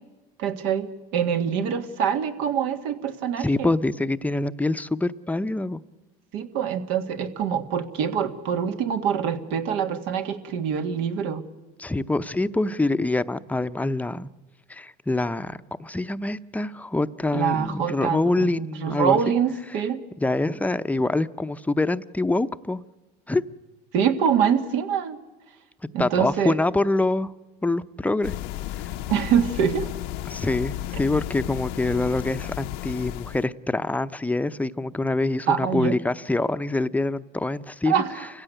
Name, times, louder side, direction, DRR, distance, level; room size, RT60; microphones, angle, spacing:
voice 1, 0.4-3.7 6.3-11.4 17.3-20.0 23.9-25.2 25.9-26.6 29.1-29.9 35.5-36.0 37.9-38.3, right 8 dB, 75° right, 7 dB, 1.9 m, -25 dB
voice 2, 3.4-5.8 11.8-14.3 14.7-19.2 20.2-22.8 23.3-23.4 26.0-27.3 27.6-28.3 28.7-28.9 30.3-38.0, left 2 dB, 10° left, 11 dB, 0.7 m, -25 dB
sound 1, 28.2-33.5, left 14 dB, 75° left, 0.8 m, -33 dB
28.0 x 16.0 x 9.1 m, 1.2 s
supercardioid pair, 110°, 19 cm